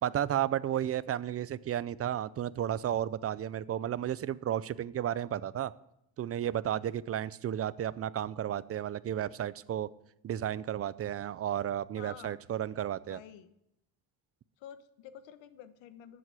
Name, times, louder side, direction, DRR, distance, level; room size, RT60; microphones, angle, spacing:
voice 1, 0.0-5.7 6.2-9.9 10.2-13.2, right 10 dB, 35° right, 19 dB, 0.5 m, -33 dB
voice 2, 11.9-12.7 13.1-13.5 14.6-16.2, left 9 dB, 85° left, 12 dB, 1.2 m, -50 dB
13.5 x 7.7 x 8.2 m, 0.80 s
cardioid pair, 130°, 44 cm